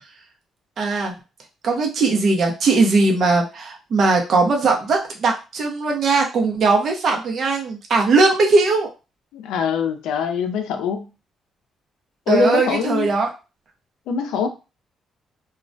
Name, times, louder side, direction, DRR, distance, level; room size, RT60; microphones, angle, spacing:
voice 1, 0.8-1.1 1.6-8.9 12.3-13.3, right 3 dB, 55° right, 2 dB, 0.7 m, -19 dB
voice 2, 9.3-11.1 12.3-13.1 14.1-14.5, left 6 dB, 90° left, 6 dB, 0.4 m, -23 dB
2.3 x 2.1 x 2.5 m, 0.30 s
cardioid pair, 90°, 0 cm